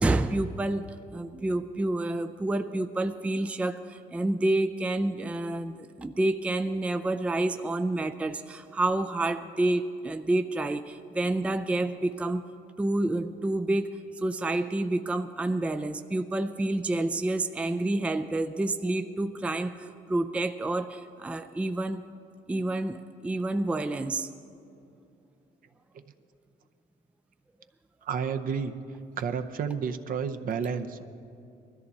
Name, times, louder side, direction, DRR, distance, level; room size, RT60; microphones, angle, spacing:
voice 1, 0.0-12.4 12.8-22.0 22.5-24.3, right 2 dB, 5° right, 9 dB, 0.4 m, -29 dB
voice 2, 28.0-28.7 29.2-31.0, right 6 dB, 55° right, 8 dB, 0.8 m, -31 dB
20.0 x 13.5 x 4.2 m, 2.7 s
cardioid pair, 110°, 17 cm